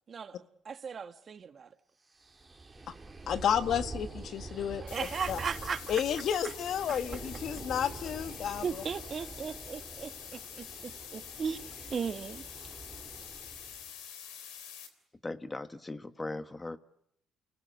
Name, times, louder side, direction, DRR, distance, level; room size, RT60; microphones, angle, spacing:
voice 1, 0.1-0.4 0.6-1.7 4.8-6.0 6.9-7.0 8.6-11.6 11.9-12.4, right 6 dB, 45° right, 1.7 m, -37 dB
Forest Thunder, 2.2-13.9, right 3 dB, 20° right, 3.0 m, -46 dB
voice 2, 3.3-4.8 5.3-5.4 5.9-8.6, left 8 dB, 60° left, 1.4 m, -31 dB
sound 1, 4.9-14.9, left 9 dB, 90° left, 3.5 m, -46 dB
voice 3, 15.2-16.8, left 2 dB, 15° left, 1.3 m, -39 dB
29.5 x 19.5 x 9.5 m
cardioid pair, 90°, 0 cm